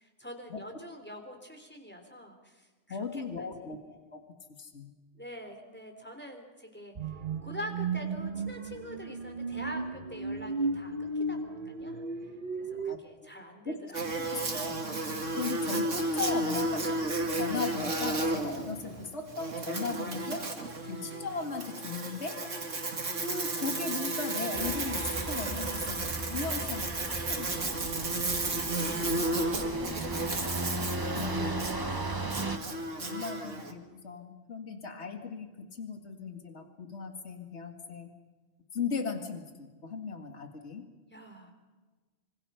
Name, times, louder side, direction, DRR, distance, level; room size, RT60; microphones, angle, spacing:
voice 1, 0.0-3.7 5.2-7.1 7.4-12.0 12.7-14.5 28.7-31.0 31.3-32.7 41.1-41.5, equal, 10° left, 4 dB, 3.8 m, -45 dB
voice 2, 2.9-4.2 4.6-4.9 12.8-13.3 13.6-14.8 15.4-16.9 17.3-20.4 20.9-22.4 23.2-27.8 28.1-28.2 31.1-31.8 33.0-38.1 38.7-40.8, left 4 dB, 65° left, 6 dB, 2.3 m, -37 dB
sound 1, 7.0-13.0, right 3 dB, 45° right, 1.2 m, -35 dB
Buzz, 13.9-33.7, right 2 dB, 85° right, 2.7 m, -33 dB
sound 2, 24.5-32.6, right 2 dB, 20° right, 1.1 m, -36 dB
26.0 x 25.5 x 5.8 m, 1.3 s
omnidirectional pair, 1.3 m